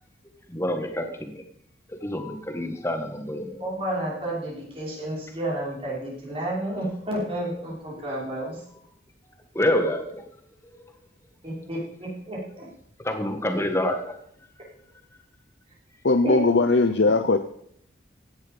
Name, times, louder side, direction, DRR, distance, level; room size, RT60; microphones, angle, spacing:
voice 1, 0.5-1.4 2.0-3.6 9.5-10.3 13.0-14.2, left 1 dB, 15° left, 5 dB, 1.7 m, -27 dB
voice 2, 3.6-8.6 11.4-12.7 16.2-16.4, right 1 dB, 30° right, -5 dB, 5.8 m, -31 dB
voice 3, 16.0-17.4, left 3 dB, 70° left, 8 dB, 0.7 m, -19 dB
15.5 x 11.0 x 5.3 m, 0.69 s
head